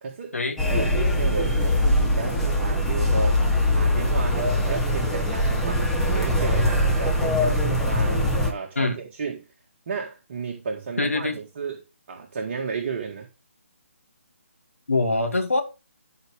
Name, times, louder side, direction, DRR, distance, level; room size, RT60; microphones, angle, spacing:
voice 1, 0.0-0.4 0.7-3.5 3.7-9.5 9.9-13.3, right 5 dB, 40° right, 1.9 m, -33 dB
sound 1, 0.6-8.5, left 1 dB, 5° left, 1.7 m, -22 dB
voice 2, 11.0-11.4 14.9-15.6, left 2 dB, 70° left, 2.8 m, -23 dB
13.0 x 5.1 x 3.5 m
figure-of-eight pair, 145°, 8 cm